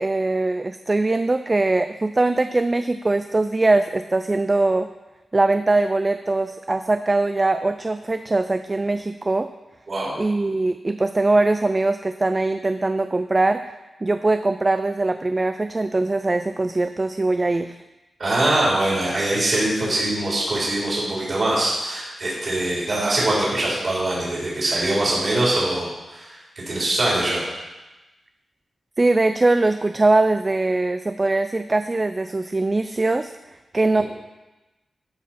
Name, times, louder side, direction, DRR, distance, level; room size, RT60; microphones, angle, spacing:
voice 1, 0.0-4.9 5.3-9.5 10.2-13.6 14.0-17.8 29.0-33.3 33.7-34.0, right 2 dB, 25° right, 9 dB, 0.3 m, -21 dB
voice 2, 9.9-10.2 18.2-26.3 26.7-27.4, right 1 dB, 45° right, -6 dB, 3.5 m, -23 dB
13.0 x 4.7 x 5.7 m, 1.1 s
wide cardioid pair, 145°, 0 cm